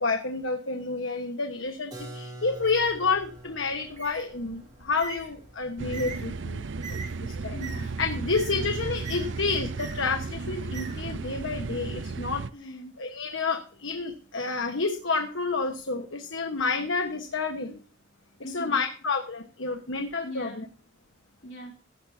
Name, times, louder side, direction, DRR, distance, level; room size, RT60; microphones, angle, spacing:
voice 1, 0.0-7.6 8.0-12.4 13.0-17.8 18.5-20.6, left 4 dB, 75° left, 5 dB, 1.3 m, -29 dB
Keyboard (musical), 1.9-7.5, right 1 dB, 20° right, 3.8 m, -47 dB
Bird, 2.4-11.5, right 4 dB, 40° right, 2.8 m, -45 dB
sound 1, 5.8-12.5, right 4 dB, 65° right, 0.5 m, -34 dB
voice 2, 7.5-8.0 8.5-8.8 12.5-12.9 18.4-18.8 20.2-20.7 21.4-21.7, equal, 60° left, 0 dB, 3.4 m, -40 dB
16.5 x 12.5 x 2.8 m, 0.38 s
head